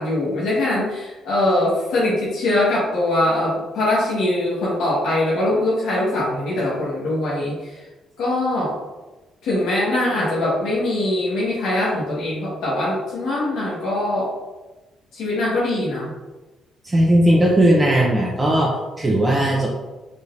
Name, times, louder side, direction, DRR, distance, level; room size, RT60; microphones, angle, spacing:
voice 1, 0.0-7.8 8.2-8.7 9.4-14.3 15.1-16.1, left 1 dB, 85° left, -6 dB, 1.5 m, -22 dB
voice 2, 16.8-19.7, right 1 dB, 20° right, -3 dB, 0.8 m, -17 dB
4.9 x 3.7 x 2.6 m, 1.1 s
cardioid pair, 90°, 0 cm